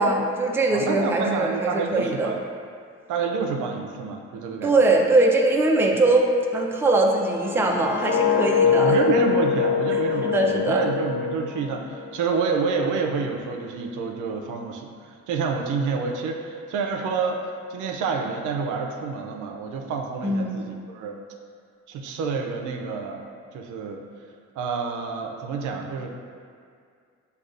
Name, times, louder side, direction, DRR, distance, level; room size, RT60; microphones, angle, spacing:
voice 1, 0.0-2.3 4.6-9.0 10.2-10.8 20.2-20.7, right 2 dB, 10° right, 0 dB, 0.4 m, -21 dB
voice 2, 0.7-2.4 3.1-4.8 8.6-14.9 15.3-17.4 17.7-21.2 21.9-23.3 23.5-24.0 24.6-26.1, right 5 dB, 85° right, 2 dB, 0.5 m, -28 dB
sound 1, 7.1-12.2 12.5-12.9, left 7 dB, 70° left, 0.4 m, -24 dB
6.4 x 2.3 x 2.4 m, 2.2 s
cardioid pair, 90°, 30 cm